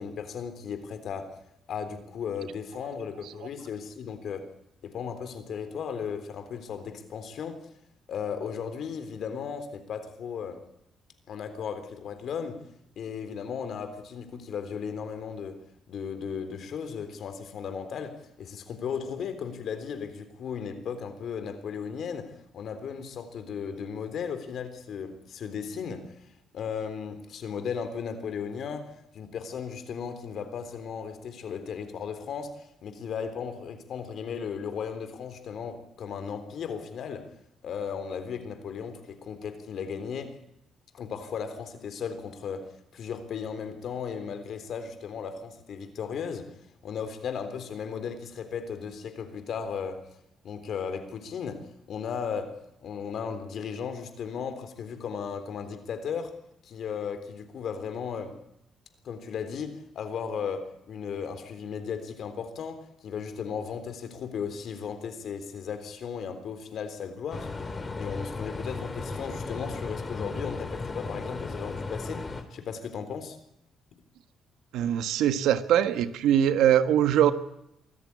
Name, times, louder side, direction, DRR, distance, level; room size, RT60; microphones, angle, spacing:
voice 1, 0.0-1.4 1.7-4.5 4.8-7.7 8.1-10.6 11.3-12.6 13.0-15.6 15.9-26.2 26.5-37.3 37.6-40.3 40.9-46.6 46.8-50.0 50.4-56.4 56.6-58.4 59.0-67.5 68.0-73.4, left 6 dB, 60° left, 3.7 m, -36 dB
sound 1, 67.3-72.4, left 3 dB, 25° left, 3.0 m, -35 dB
voice 2, 74.7-77.3, right 10 dB, 85° right, 1.5 m, -22 dB
24.0 x 14.0 x 9.7 m
cardioid pair, 105°, 0 cm